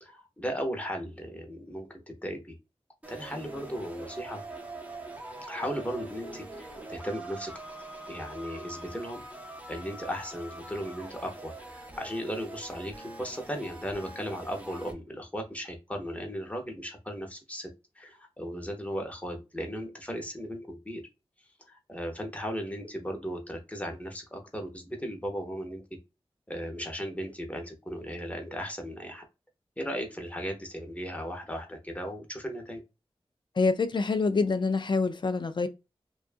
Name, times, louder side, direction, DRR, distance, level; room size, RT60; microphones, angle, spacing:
voice 1, 0.0-2.6 3.1-4.4 5.4-7.5 8.1-9.2 9.7-21.0 21.7-25.8 26.5-29.2 29.8-32.8, equal, 15° left, 0.8 m, -36 dB
sound 1, 3.0-14.9, right 2 dB, 15° right, 0.7 m, -44 dB
voice 2, 33.6-35.7, left 4 dB, 50° left, 0.3 m, -26 dB
2.6 x 2.3 x 2.5 m
wide cardioid pair, 65°, 10 cm